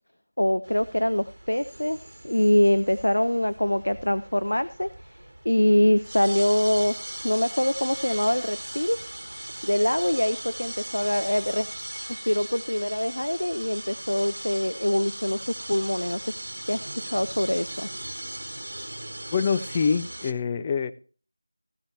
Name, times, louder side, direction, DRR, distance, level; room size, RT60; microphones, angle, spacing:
voice 1, 0.4-7.0 7.2-9.0 9.6-11.7 12.3-16.4 16.7-17.9, left 1 dB, 85° left, 13 dB, 0.6 m, -24 dB
sound 1, 0.6-20.3, right 1 dB, 75° right, 1.2 m, -38 dB
voice 2, 19.3-20.9, left 5 dB, 20° left, 11 dB, 0.4 m, -25 dB
15.0 x 8.7 x 3.0 m, 0.39 s
figure-of-eight pair, 170°, 0 cm